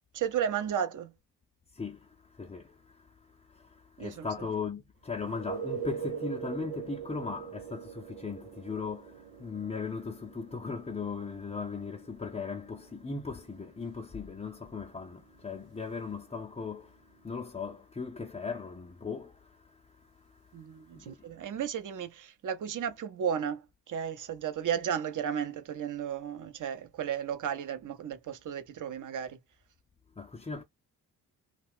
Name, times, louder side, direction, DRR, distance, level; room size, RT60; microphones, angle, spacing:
voice 1, 0.1-1.1 4.0-4.5 20.5-29.4, right 8 dB, 45° right, 0.8 m, -34 dB
voice 2, 1.7-21.3 30.2-30.6, left 5 dB, 15° left, 0.5 m, -38 dB
sound 1, 5.2-16.8 21.1-21.2, right 7 dB, 85° right, 0.6 m, -43 dB
2.3 x 2.3 x 3.4 m
hypercardioid pair, 45°, 42 cm